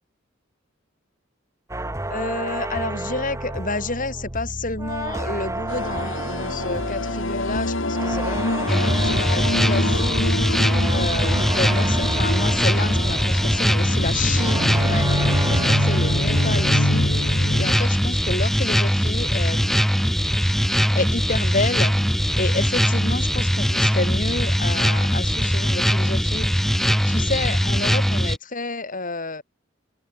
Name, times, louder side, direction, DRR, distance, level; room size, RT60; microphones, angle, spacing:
sound 1, 1.7-17.4 17.7-18.1, right 1 dB, 15° right, 1.9 m, -31 dB
voice 1, 2.1-10.2 10.9-19.9 20.9-21.9 22.3-29.4, left 3 dB, 45° left, 6.1 m, -30 dB
sound 2, 5.7-17.8, left 1 dB, 75° left, 3.7 m, -27 dB
sound 3, 8.7-28.4, equal, ahead, 2.6 m, -21 dB
open air
head